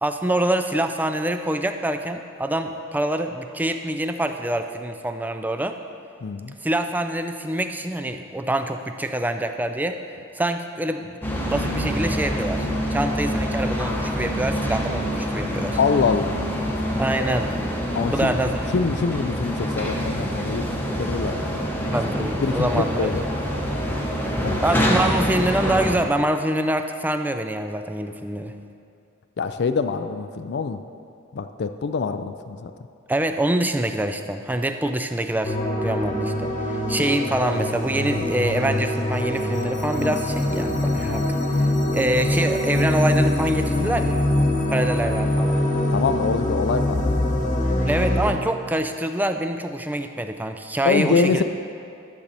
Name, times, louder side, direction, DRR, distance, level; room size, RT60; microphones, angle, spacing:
voice 1, 0.0-5.8 6.6-10.0 10.3-11.1 11.4-15.8 17.0-17.5 18.1-18.7 21.9-23.1 24.6-28.5 33.1-35.6 35.8-41.3 41.6-44.2 44.7-45.6 47.9-51.4, right 1 dB, 10° right, 7 dB, 0.4 m, -25 dB
voice 2, 6.2-6.6 15.8-16.4 17.9-23.2 24.4-24.6 29.4-30.8 31.3-32.7 45.9-47.5 50.8-51.4, left 5 dB, 55° left, 10 dB, 0.4 m, -25 dB
sound 1, 11.2-26.0, equal, 10° left, 0.9 m, -26 dB
sound 2, 35.4-48.3, left 1 dB, 40° left, 1.2 m, -23 dB
12.0 x 7.4 x 4.1 m, 2.5 s
head